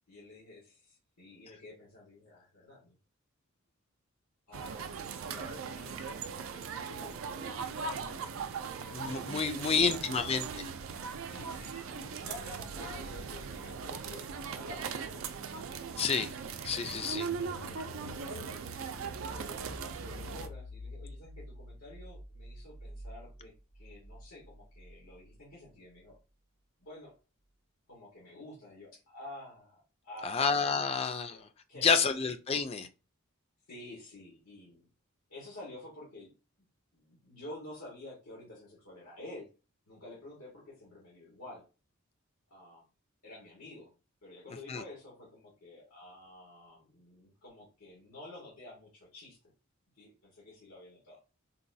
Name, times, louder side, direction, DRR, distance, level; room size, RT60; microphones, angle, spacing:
voice 1, 0.1-3.0 4.5-8.4 9.4-10.4 11.3-15.4 16.4-18.5 19.3-23.5 23.8-26.2 26.8-27.1 27.9-31.9 33.7-34.9 35.3-36.3 36.9-39.5 39.9-41.6 42.5-42.8 43.2-43.9 44.2-49.4 50.0-51.2, left 1 dB, 90° left, 1.5 m, -50 dB
sound 1, 4.5-20.5, right 5 dB, 65° right, 0.4 m, -39 dB
voice 2, 8.9-10.5 16.0-16.3 16.6-17.3 30.2-31.4 31.8-32.9 44.7-44.8, left 5 dB, 30° left, 0.3 m, -29 dB
sound 2, 16.6-25.3, left 1 dB, 50° left, 0.8 m, -48 dB
4.0 x 2.3 x 2.6 m
head